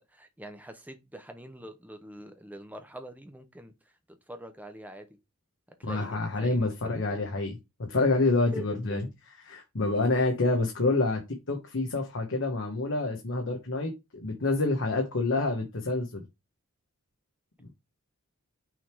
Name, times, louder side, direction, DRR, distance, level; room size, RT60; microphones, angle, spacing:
voice 1, 0.0-3.7 4.3-5.1 5.8-7.2 8.5-9.0, equal, 5° right, 0.8 m, -44 dB
voice 2, 5.8-7.6 7.9-9.0 9.5-11.2 11.5-16.2 17.6-17.7, left 2 dB, 60° left, 1.1 m, -27 dB
6.2 x 3.5 x 4.6 m
head